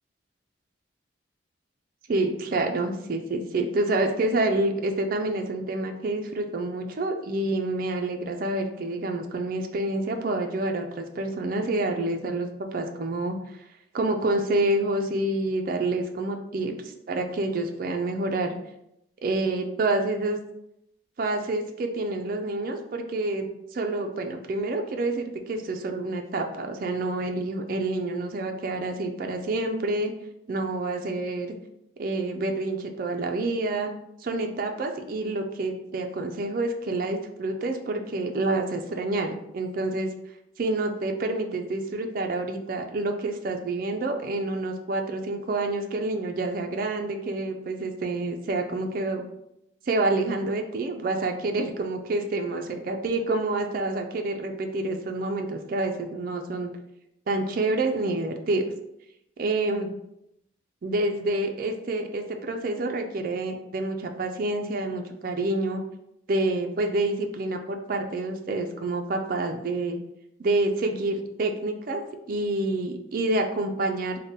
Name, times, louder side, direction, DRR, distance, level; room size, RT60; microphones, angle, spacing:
voice 1, 2.1-13.6 13.9-18.6 19.2-20.4 21.2-30.1 30.5-31.5 32.0-33.9 34.2-40.1 40.6-49.3 49.9-56.7 57.3-58.6 59.4-59.9 60.8-65.8 66.3-70.0 70.4-72.0 72.3-74.2, right 2 dB, 45° right, 4 dB, 0.4 m, -28 dB
3.3 x 2.1 x 4.1 m, 0.82 s
head